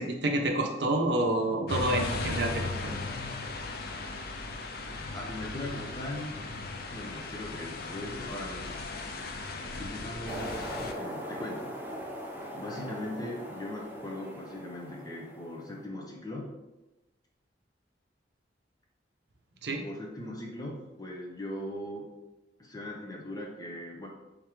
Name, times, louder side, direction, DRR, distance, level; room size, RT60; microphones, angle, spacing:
voice 1, 0.0-2.9 19.6-19.8, right 1 dB, 65° right, 3 dB, 0.6 m, -28 dB
sound 1, 1.7-10.9, left 3 dB, 55° left, 0.4 m, -37 dB
voice 2, 5.1-6.4 6.9-8.9 9.8-11.7 12.5-16.5 19.8-22.1 22.6-24.1, left 1 dB, 20° left, -1 dB, 0.7 m, -39 dB
sound 2, 10.3-15.8, equal, 10° right, 0.4 m, -40 dB
3.5 x 3.5 x 3.1 m, 1.0 s
head